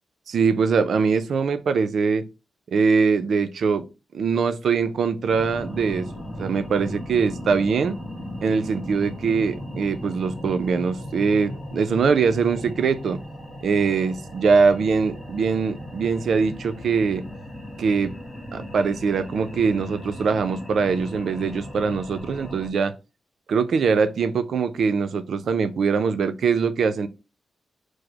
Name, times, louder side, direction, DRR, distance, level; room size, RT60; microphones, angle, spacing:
voice 1, 0.3-2.2 2.7-3.9 4.1-8.0 8.4-13.2 13.6-17.3 17.8-18.2 18.5-22.9 23.5-27.1, right 5 dB, 65° right, 0.4 m, -22 dB
sound 1, 5.3-22.7, left 1 dB, 25° left, 1.1 m, -37 dB
4.9 x 2.0 x 4.6 m
wide cardioid pair, 150°, 0 cm